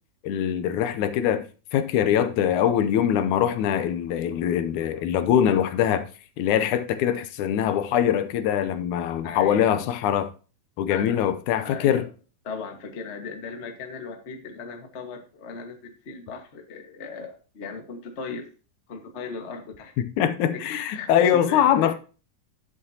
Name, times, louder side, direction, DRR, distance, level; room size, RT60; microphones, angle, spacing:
voice 1, 0.2-1.5 1.7-6.1 6.4-10.3 10.8-12.0 20.0-21.9, left 9 dB, 75° left, 2.0 m, -23 dB
voice 2, 9.2-9.9 10.9-11.2 11.6-12.1 12.4-18.5 18.9-19.9 20.5-21.9, left 4 dB, 40° left, 0.9 m, -37 dB
11.5 x 7.4 x 2.8 m
omnidirectional pair, 3.8 m